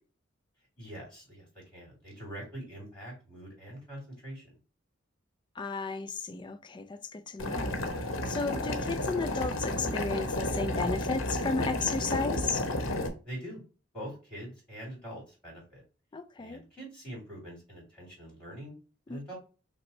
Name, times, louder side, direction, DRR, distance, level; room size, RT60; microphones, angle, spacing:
voice 1, 0.8-4.6 13.2-13.6 13.9-15.8 16.4-18.7 19.1-19.3, right 1 dB, 5° left, 2.5 m, -44 dB
voice 2, 5.6-7.8 8.3-12.6 16.1-16.6 19.1-19.3, left 4 dB, 25° left, 0.4 m, -34 dB
Boiling, 7.4-13.1, left 1 dB, 85° left, 0.9 m, -32 dB
5.8 x 2.2 x 4.2 m
head